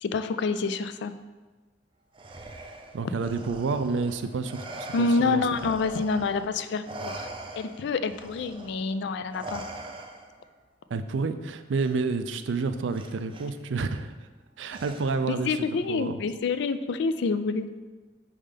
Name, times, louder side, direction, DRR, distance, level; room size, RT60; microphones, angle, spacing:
voice 1, 0.0-1.1 4.9-7.3 7.6-9.6 15.5-17.7, left 4 dB, 70° left, 11 dB, 0.3 m, -27 dB
Respiratory sounds, 2.1-6.5 6.8-10.5 11.7-11.9 12.9-13.5 14.7-15.3, right 2 dB, 30° right, 0.5 m, -42 dB
voice 2, 2.9-5.4 10.9-14.1 14.6-16.1, right 4 dB, 85° right, 10 dB, 0.4 m, -29 dB
5.4 x 3.7 x 5.1 m, 1.3 s
head